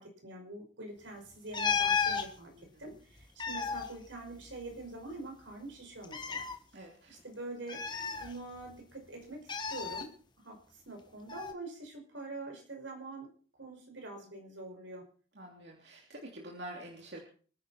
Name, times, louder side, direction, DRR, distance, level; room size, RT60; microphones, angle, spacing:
voice 1, 0.0-6.5 7.1-7.8 8.2-10.1 10.4-13.3 13.6-15.0, right 2 dB, 75° right, 2 dB, 5.8 m, -45 dB
sound 1, 1.5-2.3 3.2-4.9 5.1-5.2 6.0-6.5 7.7-8.7 9.5-10.0 11.3-11.5, left 6 dB, 25° left, 1.4 m, -33 dB
voice 2, 6.7-7.2 15.3-17.2, right 1 dB, 60° right, -1 dB, 3.2 m, -47 dB
25.5 x 10.0 x 4.4 m, 0.43 s
head